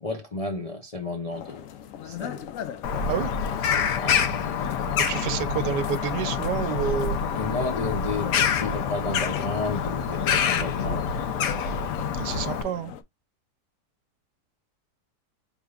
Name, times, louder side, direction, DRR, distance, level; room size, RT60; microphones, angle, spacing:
voice 1, 0.0-1.7 2.0-2.5 4.0-4.2 7.3-11.1, left 2 dB, 40° left, 0.5 m, -32 dB
sound 1, 1.3-13.0, left 10 dB, 65° left, 0.9 m, -39 dB
Bird vocalization bird call bird song, 2.8-12.6, left 7 dB, 85° left, 1.4 m, -26 dB
voice 2, 5.0-7.2 12.2-12.9, right 8 dB, 80° right, 1.3 m, -29 dB
4.9 x 3.6 x 2.3 m
omnidirectional pair, 1.8 m